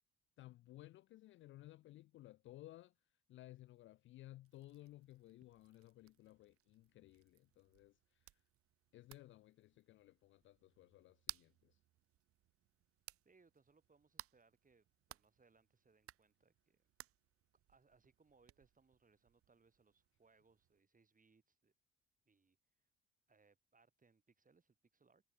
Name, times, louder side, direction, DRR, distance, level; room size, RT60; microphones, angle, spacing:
voice 1, 0.4-2.9 3.3-8.4 8.9-11.8, left 16 dB, 40° left, 0.4 m, -58 dB
sound 1, 4.4-20.8, right 14 dB, 45° right, 0.8 m, -60 dB
voice 2, 13.2-16.8 17.7-21.7 22.3-22.6 23.3-25.2, right 4 dB, 25° right, 7.4 m, -73 dB
figure-of-eight pair, 50°, 31 cm